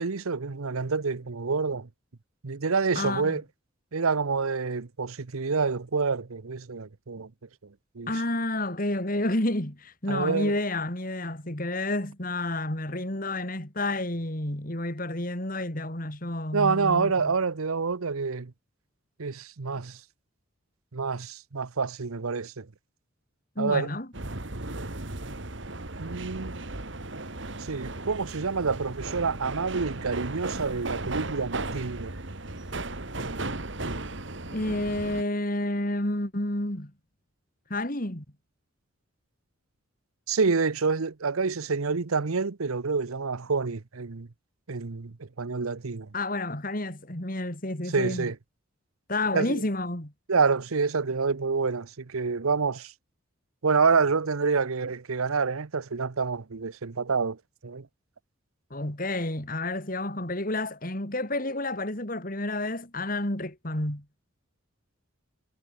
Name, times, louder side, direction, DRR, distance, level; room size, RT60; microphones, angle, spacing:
voice 1, 0.0-1.9 2.4-3.4 3.9-7.3 8.0-8.1 10.1-10.6 16.5-18.5 19.2-20.0 20.9-22.7 23.6-23.9 26.0-26.5 27.6-32.1 40.3-44.3 44.7-46.1 47.9-48.4 49.3-49.6 50.3-52.9 53.6-57.9, right 4 dB, 90° right, 0.9 m, -27 dB
voice 2, 2.9-3.3 8.1-17.3 23.6-24.1 34.5-36.9 37.7-38.2 46.1-48.3 49.1-50.1 58.7-64.0, left 1 dB, 40° left, 3.2 m, -30 dB
sound 1, 24.1-35.2, right 2 dB, 60° right, 2.2 m, -36 dB
head